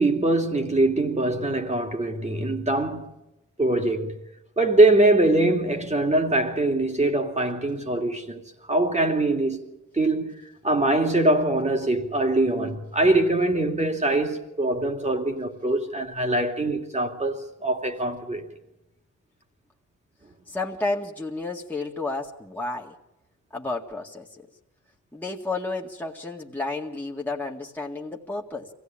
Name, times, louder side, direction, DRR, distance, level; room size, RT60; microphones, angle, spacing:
voice 1, 0.0-3.1 3.6-4.1 4.6-9.6 9.9-18.4, right 2 dB, 25° right, 2.7 m, -23 dB
voice 2, 20.5-22.9 23.5-24.4 25.1-28.7, left 3 dB, 5° left, 1.9 m, -31 dB
25.5 x 16.5 x 8.8 m
wide cardioid pair, 120°, 29 cm